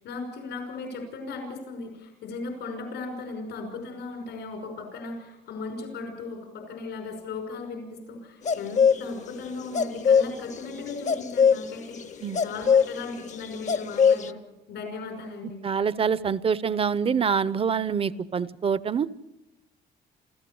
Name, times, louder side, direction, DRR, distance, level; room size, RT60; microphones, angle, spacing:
voice 1, 0.0-14.4 14.7-15.7, left 3 dB, 85° left, 3 dB, 5.6 m, -37 dB
sound 1, 8.5-9.1 9.3-9.4 9.6-14.3, left 6 dB, 40° left, 0.8 m, -21 dB
voice 2, 15.6-19.1, right 6 dB, 30° right, 18 dB, 0.6 m, -25 dB
29.0 x 14.5 x 7.0 m, 0.96 s
cardioid pair, 125°, 18 cm